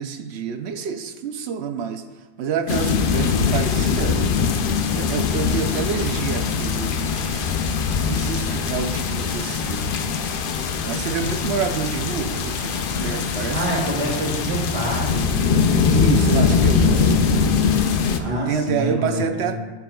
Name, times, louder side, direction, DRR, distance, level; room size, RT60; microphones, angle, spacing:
voice 1, 0.0-2.0 2.4-4.2 4.5-7.5 8.1-10.0 10.8-13.6 15.9-17.2 18.3-19.6, right 6 dB, 85° right, 7 dB, 0.9 m, -28 dB
sound 1, 2.7-18.2, left 5 dB, 65° left, 0.7 m, -22 dB
voice 2, 13.5-15.4 18.2-19.5, right 1 dB, 35° right, -6 dB, 2.5 m, -26 dB
12.5 x 4.5 x 2.3 m, 1.2 s
omnidirectional pair, 1.1 m